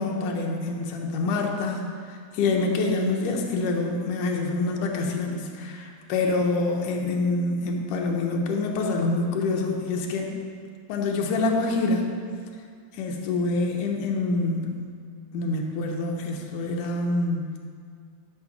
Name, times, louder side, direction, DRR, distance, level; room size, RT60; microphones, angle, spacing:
voice 1, 0.0-10.4 10.9-12.1 12.9-14.8 15.3-17.5, left 3 dB, 90° left, 1 dB, 2.6 m, -26 dB
12.0 x 6.3 x 6.0 m, 2.1 s
omnidirectional pair, 3.5 m